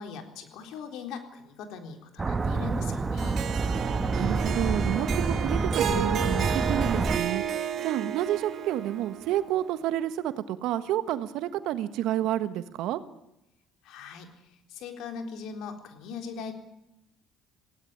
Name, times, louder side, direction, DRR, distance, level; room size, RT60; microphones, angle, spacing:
voice 1, 0.0-3.4 13.8-16.5, left 5 dB, 70° left, 5 dB, 3.8 m, -40 dB
sound 1, 2.2-7.2, right 4 dB, 25° right, 1.5 m, -28 dB
Harp, 3.2-9.5, right 8 dB, 55° right, 2.0 m, -32 dB
voice 2, 4.1-7.4 7.8-13.0, right 12 dB, 70° right, 12 dB, 1.4 m, -29 dB
19.5 x 17.0 x 9.8 m, 0.85 s
supercardioid pair, 80°, 0 cm